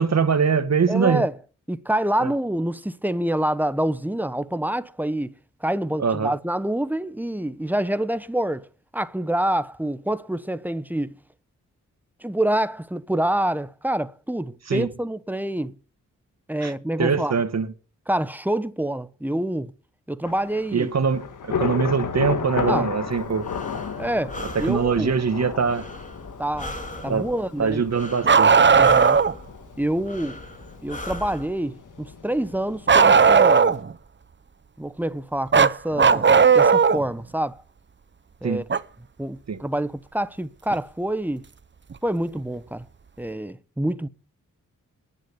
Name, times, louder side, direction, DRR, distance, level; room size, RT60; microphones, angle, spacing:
voice 1, 0.0-1.2 2.2-2.3 6.0-6.3 14.7-14.9 16.6-16.7 17.0-17.7 20.7-23.5 24.5-25.9 27.1-27.3 27.6-28.5 38.4-38.6 39.5-39.6, right 5 dB, 55° right, 1.6 m, -23 dB
voice 2, 0.9-1.3 1.7-5.3 5.6-8.7 8.9-11.1 12.2-15.8 16.5-17.4 18.1-19.7 20.1-20.9 22.7-22.9 24.0-25.1 26.4-26.7 27.0-27.8 28.7-29.2 29.8-30.4 30.8-33.8 34.8-36.3 36.5-37.6 38.4-38.6 39.2-41.5 42.0-42.9 43.2-44.1, right 1 dB, 5° right, 1.1 m, -26 dB
Thunder / Rain, 20.3-33.8, left 6 dB, 75° left, 1.8 m, -34 dB
Breathing, 23.1-31.4, left 1 dB, 25° left, 3.1 m, -39 dB
Bark, 28.2-29.3 32.9-33.9 35.5-37.0 38.7-38.8 40.7-40.8 41.9-42.0, right 5 dB, 35° right, 0.8 m, -15 dB
11.0 x 8.5 x 9.8 m
cardioid pair, 55°, 32 cm